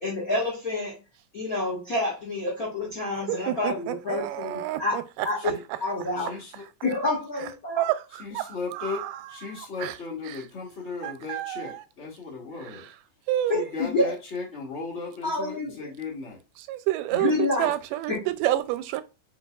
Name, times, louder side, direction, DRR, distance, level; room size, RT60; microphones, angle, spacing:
voice 1, 0.0-1.0 1.3-5.0 5.2-5.4 5.8-6.3 6.8-7.8 13.5-14.1 15.2-15.7 17.1-17.7 18.1-18.2, left 2 dB, 55° left, 1.0 m, -28 dB
voice 2, 3.2-5.8 6.3-6.4 7.4-7.5 7.8-10.0 10.3-10.4 11.0-11.8 12.7-12.9 13.3-13.7 16.7-19.0, right 14 dB, 85° right, 2.2 m, -29 dB
voice 3, 6.2-6.6 8.2-9.0 9.3-12.9 13.5-16.4, left 4 dB, 75° left, 0.6 m, -36 dB
4.7 x 4.0 x 2.3 m
omnidirectional pair, 3.8 m